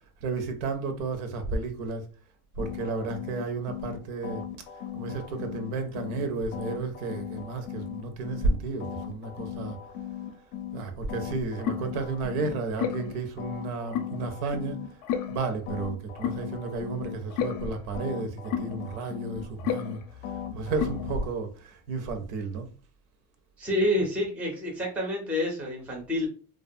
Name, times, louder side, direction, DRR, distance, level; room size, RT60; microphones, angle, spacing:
voice 1, 0.2-2.1 2.6-4.4 4.9-9.8 10.7-15.0 15.3-22.7, right 3 dB, 80° right, 0.7 m, -32 dB
sound 1, 2.6-6.2 6.5-10.8 11.1-21.3, left 9 dB, 55° left, 0.5 m, -35 dB
voice 2, 23.6-26.3, left 1 dB, 5° right, 0.4 m, -28 dB
2.3 x 2.2 x 2.6 m
cardioid pair, 150°, 43 cm